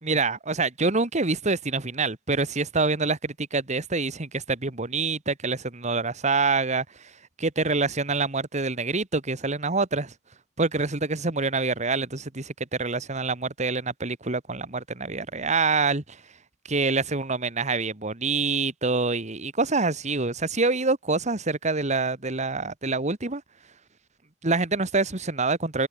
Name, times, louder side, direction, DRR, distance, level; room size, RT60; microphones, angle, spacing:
voice 1, 0.0-6.9 7.4-10.1 10.6-16.2 16.7-23.4 24.4-25.9, right 3 dB, 40° right, 1.8 m, -26 dB
head